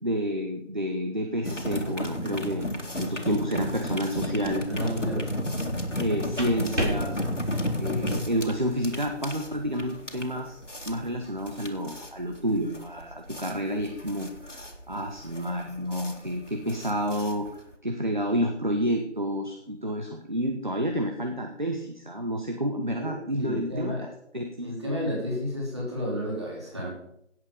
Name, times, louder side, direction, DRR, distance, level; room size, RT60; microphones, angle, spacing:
voice 1, 0.0-4.7 6.0-7.2 7.8-10.6 10.9-24.1 24.3-24.7, equal, 40° right, 3 dB, 1.3 m, -30 dB
sound 1, 1.4-17.7, left 1 dB, 90° left, 2.6 m, -33 dB
sound 2, 4.3-4.7 6.0-8.6, right 1 dB, 75° right, 4.1 m, -35 dB
voice 2, 4.7-5.4 23.0-24.0 24.6-27.0, equal, 25° right, -4 dB, 4.0 m, -31 dB
17.0 x 7.9 x 5.3 m, 0.74 s
figure-of-eight pair, 170°, 36 cm